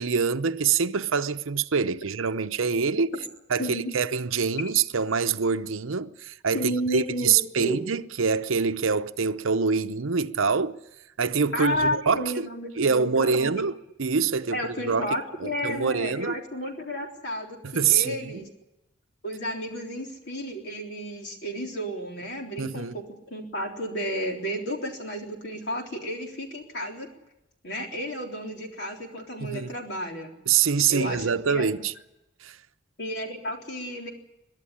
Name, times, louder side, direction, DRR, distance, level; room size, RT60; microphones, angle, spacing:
voice 1, 0.0-3.1 3.5-10.8 11.2-12.5 12.8-15.1 15.4-16.4 17.6-18.4 22.6-22.9 29.4-29.7 30.5-31.9 32.4-32.6, right 5 dB, 75° right, 0.7 m, -25 dB
voice 2, 3.6-3.9 6.5-7.8 11.5-13.5 14.5-18.5 19.2-27.1 27.6-30.3 30.9-31.7 33.0-34.1, equal, 55° left, 3.7 m, -32 dB
23.0 x 12.0 x 9.9 m
head